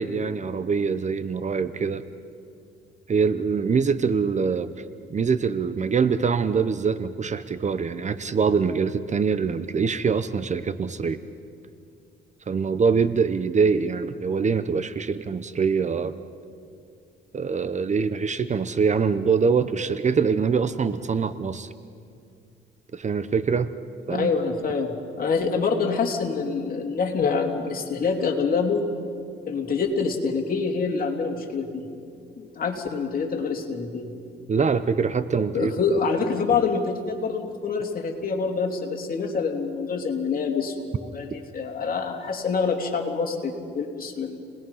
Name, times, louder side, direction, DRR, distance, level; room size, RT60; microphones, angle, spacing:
voice 1, 0.0-2.0 3.1-4.7 5.1-11.2 12.5-16.1 17.3-21.7 22.9-23.7 24.1-24.3 34.5-35.7, right 5 dB, 35° right, 13 dB, 0.9 m, -24 dB
voice 2, 24.1-28.9 29.5-31.9 32.4-34.1 35.5-40.9 41.1-44.4, left 5 dB, 45° left, 2 dB, 3.1 m, -26 dB
30.0 x 20.0 x 5.7 m, 2.4 s
cardioid pair, 90°, 20 cm